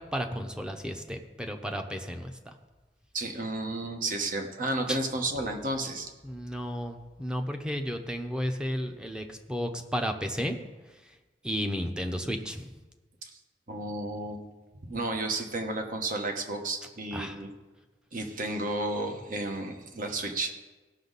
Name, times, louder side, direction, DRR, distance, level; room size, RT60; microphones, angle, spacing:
voice 1, 0.1-2.3 4.9-5.0 6.2-10.6 11.4-12.7 17.1-17.4, equal, 5° right, 5 dB, 0.8 m, -33 dB
voice 2, 3.1-6.1 13.2-13.4 13.7-14.4 14.8-17.5 18.1-20.5, right 2 dB, 50° right, 4 dB, 1.2 m, -32 dB
17.0 x 6.2 x 4.1 m, 1.2 s
head